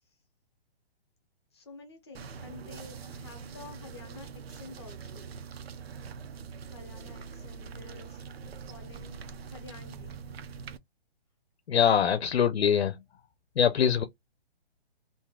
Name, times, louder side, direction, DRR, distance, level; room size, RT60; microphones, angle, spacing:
voice 1, 1.5-5.4 6.7-8.3 8.6-10.3 11.8-12.1, left 4 dB, 25° left, 0.7 m, -50 dB
sound 1, 2.1-10.8, right 6 dB, 75° right, 0.6 m, -43 dB
voice 2, 11.7-13.0 13.6-14.0, left 8 dB, 90° left, 0.6 m, -23 dB
2.7 x 2.3 x 3.4 m
hypercardioid pair, 175°, 31 cm